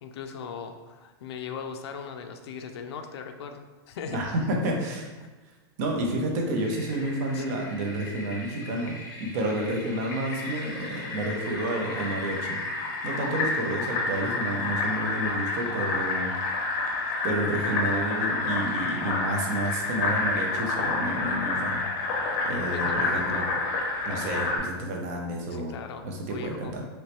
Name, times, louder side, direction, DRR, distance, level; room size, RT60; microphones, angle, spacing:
voice 1, 0.0-4.5 5.2-5.3 7.3-7.5 17.7-17.9 22.7-23.5 25.5-26.8, left 6 dB, 90° left, 6 dB, 0.4 m, -39 dB
voice 2, 4.1-5.1 5.8-12.6 13.0-16.3 17.2-21.8 22.4-23.5 24.1-25.7 26.0-26.8, right 1 dB, 40° right, 1 dB, 0.6 m, -30 dB
Fill (with liquid), 6.6-24.6, left 3 dB, 35° left, 0.7 m, -30 dB
3.1 x 3.0 x 2.9 m, 1.3 s
supercardioid pair, 175°, 13 cm